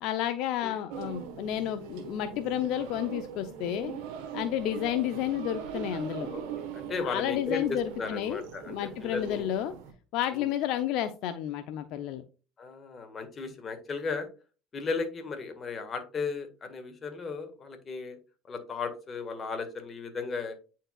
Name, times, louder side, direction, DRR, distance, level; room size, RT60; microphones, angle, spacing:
voice 1, 0.0-3.9 4.3-6.3 7.0-9.7 10.1-12.2, left 11 dB, 70° left, 8 dB, 0.5 m, -31 dB
sound 1, 0.9-9.9, right 7 dB, 80° right, 1.2 m, -41 dB
voice 2, 6.3-9.5 10.3-10.5 12.6-14.3 14.7-18.2 18.4-20.6, left 4 dB, 35° left, 7 dB, 1.6 m, -36 dB
8.7 x 4.6 x 2.3 m, 0.34 s
supercardioid pair, 100°, 0 cm